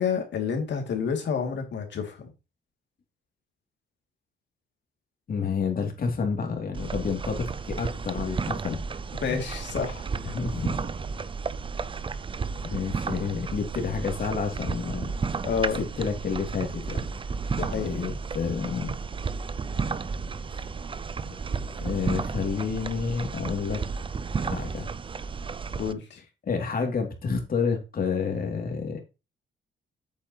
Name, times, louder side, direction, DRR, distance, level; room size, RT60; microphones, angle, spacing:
voice 1, 0.0-2.3 9.2-10.1 15.4-15.8 17.6-17.9 25.8-26.2, left 6 dB, 65° left, 2.8 m, -29 dB
voice 2, 5.3-8.9 9.3-9.4 10.2-10.9 12.6-15.1 15.8-17.0 17.7-19.0 20.5-20.7 21.7-23.8 24.4-24.9 26.4-29.0, left 5 dB, 45° left, 3.0 m, -29 dB
sound 1, 6.7-25.9, right 5 dB, 25° right, 0.5 m, -33 dB
8.6 x 7.4 x 3.1 m
cardioid pair, 90°, 20 cm